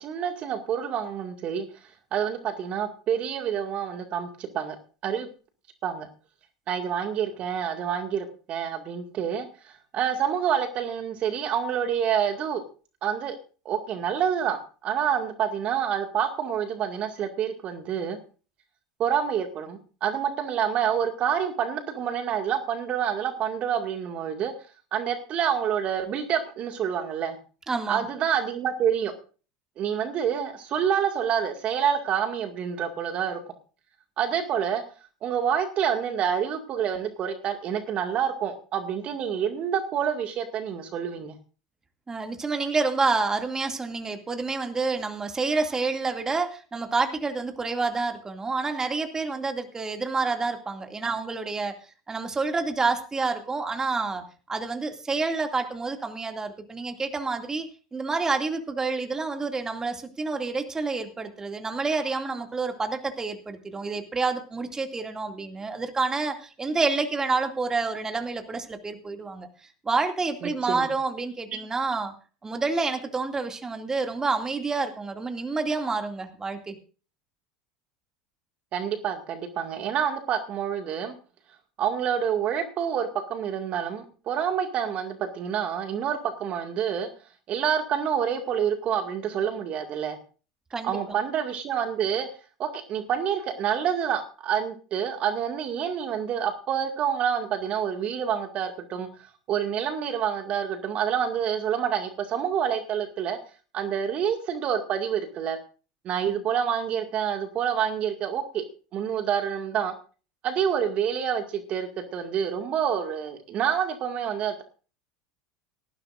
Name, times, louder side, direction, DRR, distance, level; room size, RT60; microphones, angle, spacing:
voice 1, 0.0-1.6 2.1-4.8 5.0-5.3 5.8-6.1 6.7-12.6 13.0-13.4 13.7-18.2 19.0-24.5 24.9-27.4 27.9-29.1 29.8-33.5 34.2-34.8 35.2-41.4 70.4-70.9 78.7-81.1 81.8-87.1 87.5-90.2 90.8-92.3 92.6-103.4 103.7-105.6 106.0-108.7 108.9-109.9 110.4-114.6, right 8 dB, 45° right, 6 dB, 2.0 m, -27 dB
voice 2, 27.7-28.1 42.1-51.7 52.1-54.2 54.5-57.7 57.9-69.5 69.9-72.1 72.4-76.8 90.7-91.2, right 4 dB, 20° right, 5 dB, 2.4 m, -28 dB
18.5 x 14.5 x 2.6 m, 0.37 s
figure-of-eight pair, 75°, 3 cm